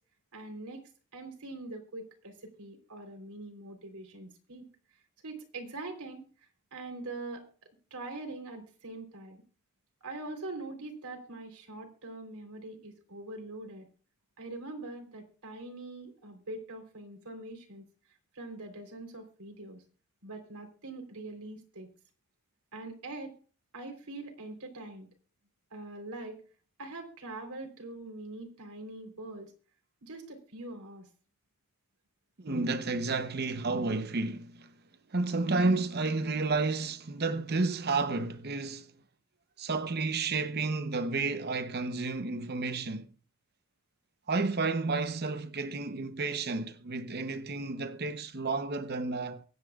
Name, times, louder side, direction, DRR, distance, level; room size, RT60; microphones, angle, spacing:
voice 1, 0.3-0.8 1.1-4.7 5.2-6.3 6.7-7.4 7.9-9.4 10.0-13.9 14.4-17.8 18.3-19.8 20.2-21.9 22.7-23.3 23.7-25.1 25.7-26.4 26.8-29.5 30.0-31.1, right 2 dB, 90° right, 3.7 m, -43 dB
voice 2, 32.4-34.7 35.1-38.9 39.6-43.1 44.3-49.4, right 3 dB, 45° right, 0.8 m, -31 dB
24.0 x 9.7 x 2.4 m
head